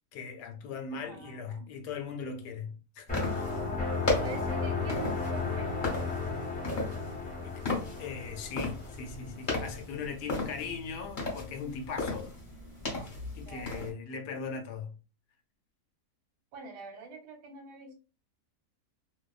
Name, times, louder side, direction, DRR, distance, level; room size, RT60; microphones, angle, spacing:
voice 1, 0.1-3.2 7.4-7.5 8.0-12.3 13.3-14.9, left 5 dB, 80° left, 1.1 m, -39 dB
voice 2, 0.9-1.7 4.1-5.8 13.4-13.9 16.5-17.9, right 4 dB, 85° right, 1.3 m, -45 dB
sound 1, 3.1-13.9, left 3 dB, 40° left, 0.8 m, -36 dB
sound 2, 3.1-9.8, left 4 dB, 10° left, 0.4 m, -34 dB
sound 3, 5.4-13.8, right 1 dB, 60° right, 0.6 m, -51 dB
2.6 x 2.2 x 2.3 m
omnidirectional pair, 1.7 m